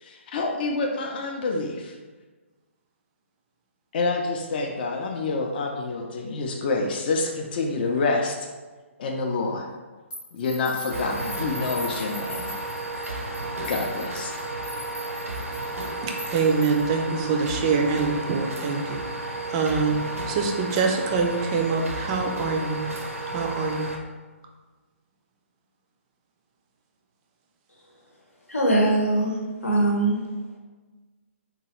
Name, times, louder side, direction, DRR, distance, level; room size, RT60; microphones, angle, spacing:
voice 1, 0.0-1.9 3.9-8.4 9.0-9.7 10.3-12.5 13.7-14.3, left 3 dB, 45° left, 1 dB, 0.4 m, -27 dB
sound 1, 10.1-16.9, left 1 dB, 20° left, 0.8 m, -41 dB
sound 2, 10.9-24.0, right 2 dB, 85° right, 0.5 m, -33 dB
voice 2, 16.0-19.9 20.3-22.8 23.3-23.9, right 4 dB, 25° right, 2 dB, 0.3 m, -25 dB
voice 3, 28.5-29.4 29.6-30.2, right 1 dB, 85° left, -1 dB, 0.8 m, -21 dB
3.0 x 2.3 x 2.9 m, 1.3 s
figure-of-eight pair, 135°, 7 cm